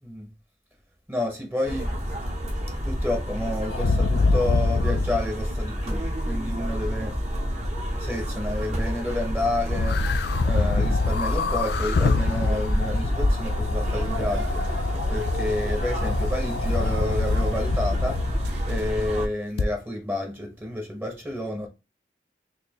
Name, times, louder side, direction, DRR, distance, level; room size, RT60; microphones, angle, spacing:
voice 1, 1.1-2.0 2.7-7.1 8.0-10.0 10.4-18.2 18.6-21.7, left 1 dB, 10° right, 0.8 m, -30 dB
sound 1, 1.6-19.3, equal, 40° right, 0.8 m, -29 dB
sound 2, 3.7-5.3 9.7-19.0 19.6-19.7, left 3 dB, 60° left, 0.4 m, -25 dB
sound 3, 13.8-19.3, right 2 dB, 65° right, 0.5 m, -39 dB
4.2 x 2.8 x 2.8 m
head